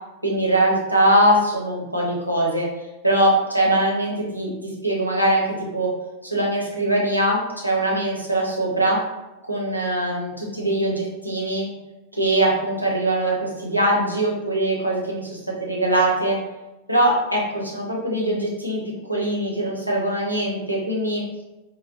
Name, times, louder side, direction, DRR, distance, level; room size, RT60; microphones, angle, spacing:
voice 1, 0.2-2.7 3.0-5.5 5.7-5.9 6.2-9.0 9.5-11.7 12.1-16.4 16.9-18.8 19.1-21.2, right 1 dB, 90° right, -3 dB, 0.8 m, -22 dB
4.7 x 2.1 x 2.8 m, 1.0 s
figure-of-eight pair, 90°, 0 cm